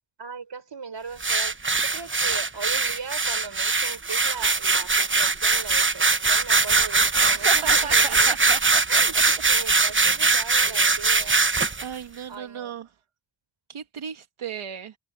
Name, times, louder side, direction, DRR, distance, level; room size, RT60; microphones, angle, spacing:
voice 1, 0.2-8.4 8.9-11.5 12.3-12.7, right 5 dB, 60° right, 4.1 m, -38 dB
sound 1, 1.2-11.9, right 4 dB, 25° right, 1.1 m, -21 dB
voice 2, 7.2-9.0 10.6-11.0 11.8-12.9 13.7-15.0, right 8 dB, 80° right, 1.5 m, -35 dB
cardioid pair, 50°, 49 cm